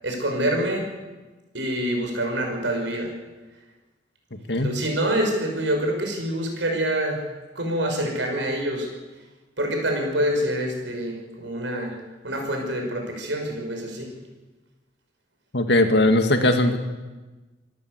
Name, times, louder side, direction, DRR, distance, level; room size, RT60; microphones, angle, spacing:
voice 1, 0.0-0.9 1.5-3.1 4.5-7.2 7.6-8.9 9.6-11.9 12.2-14.1, right 1 dB, 80° right, 2 dB, 5.9 m, -26 dB
voice 2, 15.5-16.8, left 1 dB, 65° left, 6 dB, 2.1 m, -19 dB
25.5 x 13.5 x 8.1 m, 1.2 s
head